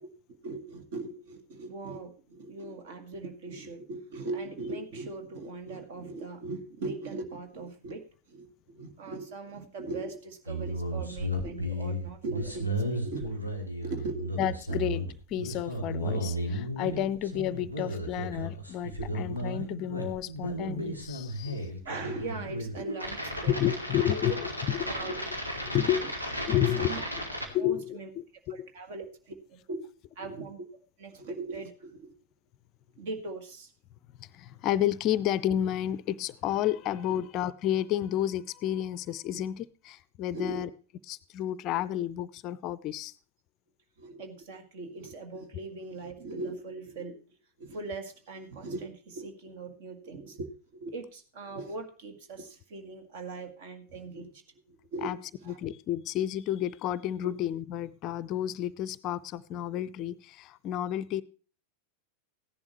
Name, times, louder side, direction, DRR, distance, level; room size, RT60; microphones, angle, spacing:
voice 1, 0.3-13.4 13.8-14.3 14.7-14.9 18.9-19.2 21.5-23.8 24.1-24.2 24.9-25.2 26.0-26.1 26.8-27.1 27.6-28.1 28.5-29.8 30.2-30.7 31.0-32.1 33.0-33.7 37.1-37.2 40.3-40.7 44.0-47.2 47.6-54.4 54.7-55.6, right 3 dB, 55° right, 6 dB, 1.9 m, -40 dB
sound 1, 10.5-27.5, equal, 85° right, 2.2 m, -34 dB
voice 2, 14.4-15.0 15.3-21.7 23.5-24.9 25.6-26.1 26.5-26.9 27.5-28.7 34.2-40.7 41.1-43.1 55.0-55.2 55.5-61.2, left 11 dB, 35° left, 19 dB, 0.5 m, -31 dB
15.5 x 10.5 x 3.1 m, 0.37 s
figure-of-eight pair, 90°, 0 cm